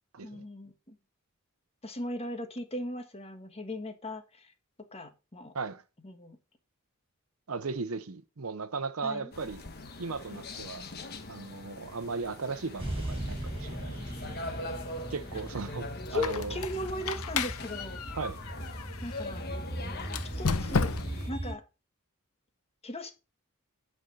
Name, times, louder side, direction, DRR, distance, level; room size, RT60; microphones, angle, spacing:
voice 1, 0.2-1.0 1.8-4.5 4.9-5.5 6.0-6.4 9.0-9.3 16.1-18.0 19.0-19.5 20.4-20.9 21.3-21.6 22.8-23.1, left 1 dB, 25° left, 1.6 m, -37 dB
voice 2, 7.5-9.6 10.0-10.8 11.3-14.4 15.1-16.6 18.1-18.4, right 4 dB, 70° right, 0.8 m, -37 dB
sound 1, 9.3-21.3, left 2 dB, 45° left, 1.3 m, -43 dB
sound 2, 12.8-21.5, right 1 dB, 25° right, 4.8 m, -39 dB
Squeak, 16.1-19.2 20.0-21.3, left 5 dB, 75° left, 0.8 m, -33 dB
9.2 x 5.4 x 5.2 m
head